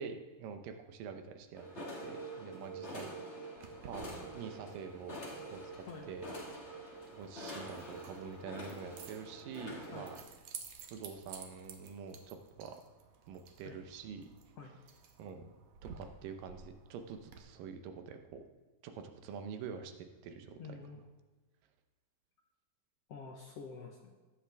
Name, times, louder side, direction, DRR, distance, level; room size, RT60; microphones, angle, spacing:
voice 1, 0.0-3.1 3.8-5.2 5.5-6.3 7.1-10.2 10.9-12.8 13.3-14.2 15.2-15.5 15.9-18.4 18.8-20.6, right 6 dB, 85° right, 6 dB, 2.6 m, -46 dB
sound 1, 1.6-10.2, right 1 dB, 45° left, 0.8 m, -46 dB
Keys jangling, 3.6-17.4, right 6 dB, 65° right, 1.8 m, -54 dB
voice 2, 20.6-21.0 23.1-24.1, left 4 dB, 70° left, 1 dB, 1.6 m, -48 dB
18.5 x 7.6 x 3.5 m, 1.3 s
omnidirectional pair, 3.8 m